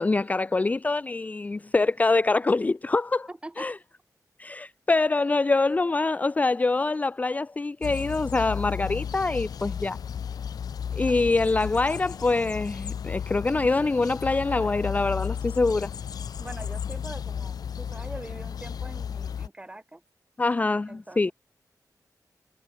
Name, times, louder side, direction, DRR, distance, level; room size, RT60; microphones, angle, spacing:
voice 1, 0.0-3.3 3.6-3.7 4.4-10.0 10.9-15.9 20.4-21.3, left 3 dB, 25° left, 0.5 m, -25 dB
voice 2, 3.3-3.7 11.1-11.4 16.4-20.0 20.9-21.3, right 2 dB, 15° right, 2.6 m, -43 dB
sound 1, 7.8-19.5, left 7 dB, 80° left, 0.4 m, -34 dB
wide cardioid pair, 165°, 7 cm